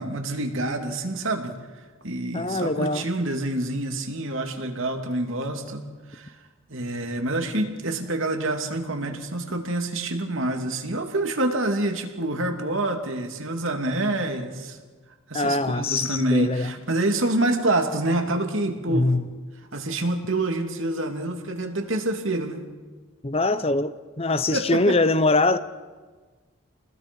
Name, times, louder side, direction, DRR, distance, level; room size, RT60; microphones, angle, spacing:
voice 1, 0.0-1.6 2.0-6.3 6.7-14.8 15.3-19.1 19.7-22.6 24.5-25.0, right 2 dB, 70° right, 2.7 m, -27 dB
voice 2, 2.3-3.0 15.3-16.7 18.9-19.3 23.2-23.9 24.2-25.6, left 2 dB, 25° left, 0.7 m, -23 dB
29.5 x 20.0 x 5.4 m
head